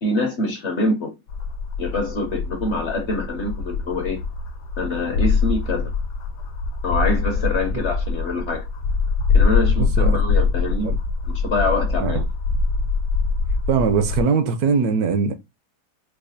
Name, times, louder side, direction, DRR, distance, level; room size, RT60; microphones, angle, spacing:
voice 1, 0.0-1.1 1.8-4.2 4.8-5.9 6.8-8.6 9.3-10.9 11.3-12.2, left 2 dB, 55° left, 0.8 m, -25 dB
sound 1, 1.3-14.2, left 4 dB, 80° left, 1.2 m, -23 dB
voice 2, 9.8-10.2 10.8-11.0 12.0-12.2 13.7-15.3, right 5 dB, 70° right, 1.0 m, -21 dB
4.7 x 2.3 x 2.6 m
omnidirectional pair, 1.8 m